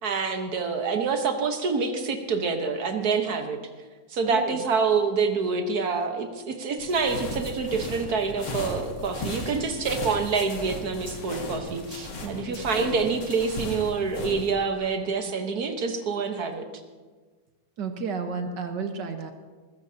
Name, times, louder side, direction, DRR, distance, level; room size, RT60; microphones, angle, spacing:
voice 1, 0.0-3.6 4.1-16.6, right 5 dB, 60° right, 5 dB, 1.7 m, -27 dB
voice 2, 4.3-4.6 12.2-12.6 17.8-19.3, right 5 dB, 80° right, 6 dB, 1.8 m, -32 dB
sound 1, 6.8-14.5, left 2 dB, 85° left, 2.4 m, -36 dB
21.0 x 15.0 x 2.8 m, 1.4 s
omnidirectional pair, 1.9 m